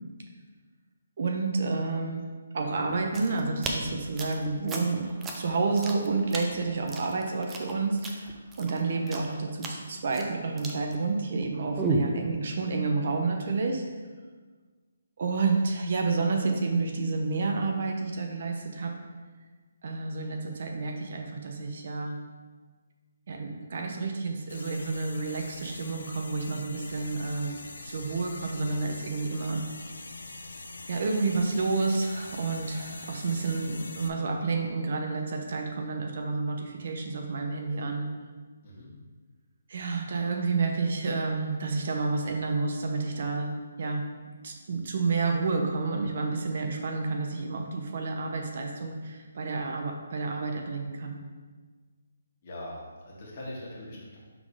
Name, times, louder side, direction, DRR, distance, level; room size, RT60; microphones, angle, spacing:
voice 1, 1.2-2.2 2.5-13.8 15.2-18.9 19.8-22.1 23.3-27.6 27.8-29.6 30.9-38.1 39.7-43.5 43.8-44.0 44.4-51.2, right 3 dB, 45° right, 3 dB, 0.6 m, -30 dB
sound 1, 2.9-11.4 11.8-12.1, right 2 dB, 10° right, 0.4 m, -34 dB
sound 2, 24.5-34.1, left 3 dB, 80° left, 0.7 m, -43 dB
voice 2, 52.4-54.2, left 1 dB, 30° left, -5 dB, 1.6 m, -41 dB
5.9 x 3.8 x 4.8 m, 1.4 s
hypercardioid pair, 175°, 0 cm